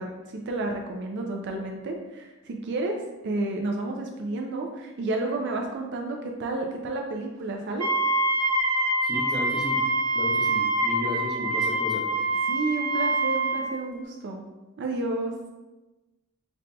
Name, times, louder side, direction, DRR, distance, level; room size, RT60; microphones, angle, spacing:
voice 1, 0.0-3.0 3.2-7.9 12.5-14.5 14.8-15.3, right 2 dB, 50° right, 2 dB, 0.4 m, -31 dB
Wind instrument woodwind instrument, 7.8-13.7, right 1 dB, 75° right, 0.7 m, -25 dB
voice 2, 9.0-9.8 10.1-12.0, left 1 dB, 5° right, -5 dB, 0.7 m, -33 dB
5.2 x 2.6 x 2.2 m, 1.1 s
head